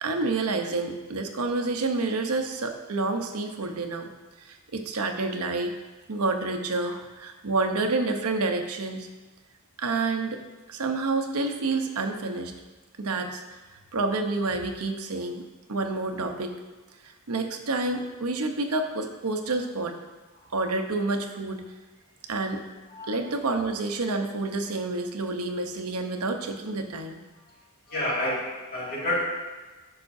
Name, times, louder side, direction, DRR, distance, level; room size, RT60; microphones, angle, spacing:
voice 1, 0.0-4.1 4.4-5.8 6.1-9.1 9.8-10.4 10.7-12.5 13.0-13.4 13.9-15.4 15.7-16.6 17.3-20.0 20.5-21.6 22.3-22.6 23.1-27.2, right 3 dB, 85° right, 5 dB, 0.8 m, -28 dB
voice 2, 27.9-29.2, left 1 dB, 45° left, -6 dB, 2.2 m, -29 dB
13.0 x 5.8 x 2.7 m, 1.2 s
head